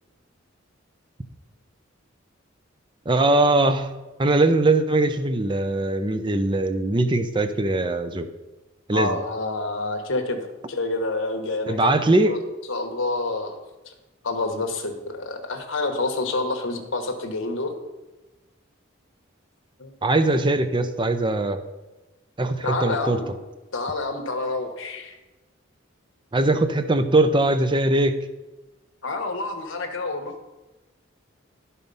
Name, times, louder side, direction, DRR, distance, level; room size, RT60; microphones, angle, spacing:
voice 1, 3.1-3.9 4.2-8.3 8.9-9.2 11.7-12.4 20.0-21.6 22.4-23.2 26.3-28.2, right 2 dB, 25° right, 9 dB, 0.6 m, -21 dB
voice 2, 8.9-10.4 10.7-11.9 12.3-12.4 12.7-13.6 13.8-13.9 14.2-17.7 19.8-19.9 22.6-23.3 23.7-25.1 29.0-30.4, left 2 dB, 70° left, 3 dB, 1.1 m, -28 dB
12.0 x 4.2 x 5.4 m, 1.1 s
head